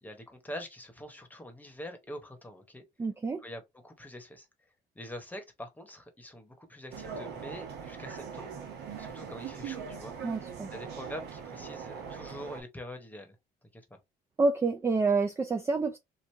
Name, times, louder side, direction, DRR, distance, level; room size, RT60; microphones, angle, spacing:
voice 1, 0.0-2.8 3.4-4.5 4.9-8.6 9.0-10.3 10.7-13.4 13.7-14.0, left 1 dB, 10° left, 1.0 m, -45 dB
voice 2, 3.0-3.4 10.2-10.7 14.4-16.0, right 3 dB, 15° right, 0.4 m, -28 dB
sound 1, 6.9-12.6, right 6 dB, 80° right, 1.2 m, -41 dB
3.1 x 2.5 x 3.2 m
cardioid pair, 110°, 17 cm